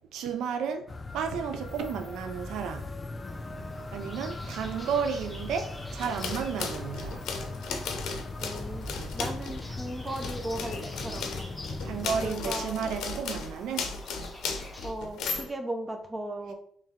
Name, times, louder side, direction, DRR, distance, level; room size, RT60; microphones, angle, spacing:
voice 1, 0.1-0.9 1.1-2.9 3.9-7.2 11.8-13.9, right 7 dB, 85° right, 0.3 m, -32 dB
sound 1, 0.9-12.3, left 2 dB, 30° left, 0.3 m, -39 dB
sound 2, 3.2-14.9, left 1 dB, 10° left, 0.9 m, -48 dB
sound 3, 6.0-9.7 10.1-15.5, left 4 dB, 85° left, 0.5 m, -36 dB
voice 2, 8.4-8.9 9.1-11.3 12.1-12.8 14.8-16.5, right 1 dB, 25° right, 0.6 m, -36 dB
3.2 x 2.8 x 3.5 m
cardioid pair, 90°, 0 cm